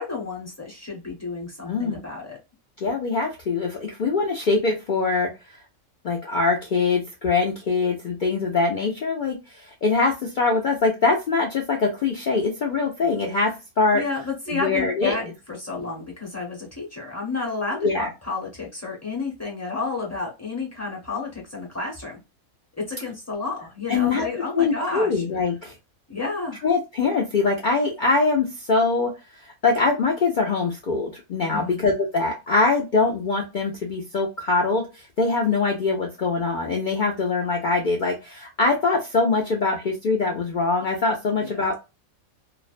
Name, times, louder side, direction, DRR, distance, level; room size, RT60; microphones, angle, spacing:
voice 1, 0.0-2.4 13.9-22.2 22.8-25.2 26.1-26.6 31.5-31.8 41.3-41.6, left 3 dB, 15° left, -1 dB, 0.6 m, -31 dB
voice 2, 2.8-5.3 6.0-9.4 9.6-13.5 13.8-14.0 14.5-15.2 17.8-18.1 23.9-24.2 24.6-25.7 26.6-29.1 29.4-34.9 35.2-41.8, left 3 dB, 70° left, 0 dB, 0.4 m, -23 dB
2.5 x 2.1 x 2.4 m, 0.26 s
omnidirectional pair, 1.5 m